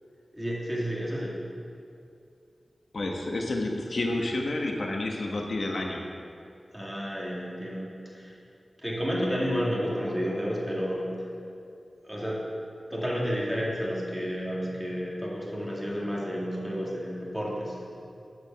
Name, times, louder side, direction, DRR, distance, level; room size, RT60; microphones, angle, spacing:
voice 1, 0.3-1.4 6.7-8.3 8.8-11.1 12.0-12.4 12.9-17.8, equal, ahead, -5 dB, 2.2 m, -31 dB
voice 2, 2.9-6.0, left 2 dB, 65° left, 1 dB, 1.2 m, -30 dB
11.0 x 5.2 x 7.3 m, 2.5 s
wide cardioid pair, 90°, 0 cm